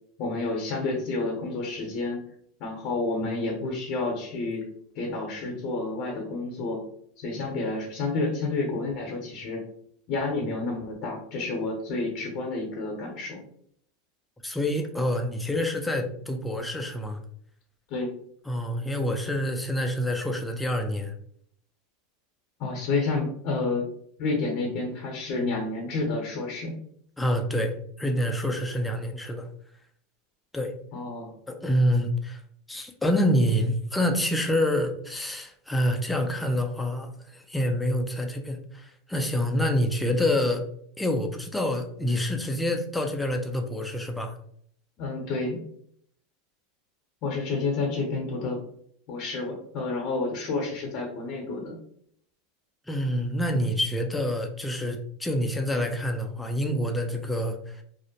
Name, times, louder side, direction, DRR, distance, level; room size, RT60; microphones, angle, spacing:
voice 1, 0.2-2.2 2.6-4.7 4.9-6.8 7.2-9.6 10.1-13.4 17.9-18.1 22.6-23.8 24.2-26.7 30.9-31.3 45.0-45.6 47.2-48.6 49.1-51.8, left 3 dB, 55° left, 0 dB, 0.7 m, -30 dB
voice 2, 14.4-17.2 18.5-21.1 27.2-29.5 30.5-30.7 31.5-32.4 32.7-40.6 41.0-44.4 52.9-57.8, left 1 dB, 5° left, 4 dB, 0.4 m, -27 dB
2.5 x 2.0 x 2.8 m, 0.66 s
hypercardioid pair, 105°, 0 cm